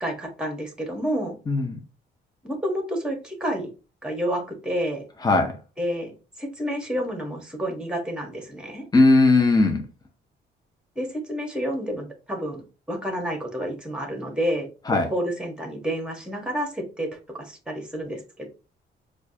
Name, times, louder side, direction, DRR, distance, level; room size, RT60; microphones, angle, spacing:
voice 1, 0.0-1.3 2.4-3.7 4.0-5.0 5.8-8.8 10.9-12.6 12.9-14.7 15.1-18.5, equal, 5° right, 1.3 m, -29 dB
voice 2, 5.2-5.6 8.9-9.8 14.9-15.1, left 2 dB, 20° left, 0.8 m, -18 dB
4.5 x 2.4 x 2.8 m
cardioid pair, 90°, 20 cm